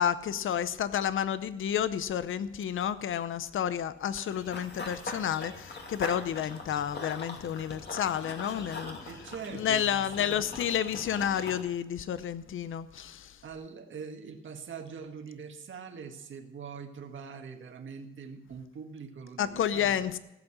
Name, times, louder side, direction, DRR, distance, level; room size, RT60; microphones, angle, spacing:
voice 1, 0.0-9.0 9.5-13.4 19.4-20.2, left 9 dB, 75° left, 14 dB, 0.7 m, -30 dB
Run / Bird vocalization bird call bird song, 4.2-11.6, left 3 dB, 50° left, 2.6 m, -42 dB
voice 2, 9.1-10.5 13.4-20.1, right 6 dB, 65° right, 4 dB, 1.8 m, -43 dB
16.5 x 8.0 x 6.2 m, 0.92 s
wide cardioid pair, 120°, 21 cm